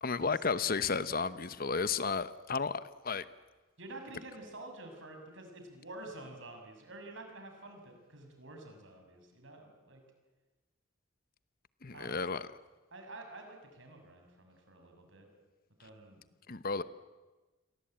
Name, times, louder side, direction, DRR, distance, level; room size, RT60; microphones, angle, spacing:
voice 1, 0.0-3.2 11.8-12.5 16.5-16.8, left 5 dB, 45° left, 14 dB, 0.9 m, -33 dB
voice 2, 3.8-10.0 11.9-12.2 12.9-15.3 15.8-16.2, right 2 dB, 70° right, 4 dB, 6.0 m, -49 dB
29.0 x 23.0 x 8.8 m, 1.2 s
head